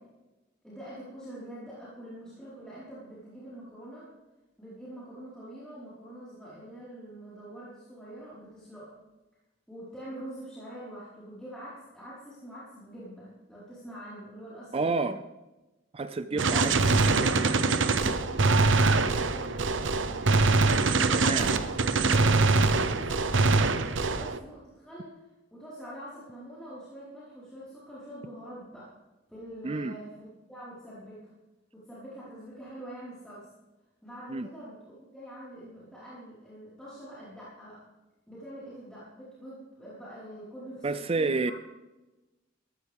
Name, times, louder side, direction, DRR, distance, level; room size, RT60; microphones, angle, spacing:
voice 1, 0.6-4.1 4.6-9.0 9.7-15.1 16.3-20.4 20.9-21.6 22.1-25.2 25.5-29.0 29.3-31.2 31.7-33.5 34.0-37.8 38.3-41.5, right 1 dB, 5° left, -10 dB, 4.5 m, -45 dB
voice 2, 14.7-15.2 15.9-16.7 21.1-21.5 29.6-30.0 34.3-34.5 40.8-41.5, right 3 dB, 30° right, 12 dB, 0.4 m, -29 dB
Gunshot gunfire, 16.4-24.4, right 3 dB, 85° right, 0.9 m, -24 dB
17.5 x 14.0 x 3.6 m, 1.1 s
head